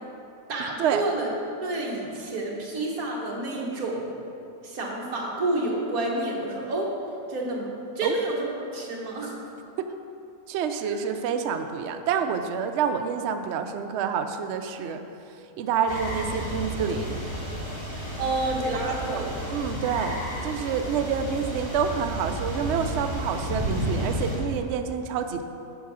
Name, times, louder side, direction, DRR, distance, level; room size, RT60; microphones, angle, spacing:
voice 1, 0.5-1.3 1.6-4.0 4.6-6.9 7.3-9.4 10.8-11.1 17.9-19.4, right 2 dB, 60° right, -2 dB, 1.8 m, -29 dB
voice 2, 10.5-15.0 15.6-17.2 19.1-25.4, right 7 dB, 90° right, 7 dB, 0.6 m, -28 dB
sound 1, 15.9-24.4, equal, 20° right, 2.3 m, -32 dB
9.1 x 4.7 x 6.1 m, 2.6 s
omnidirectional pair, 1.8 m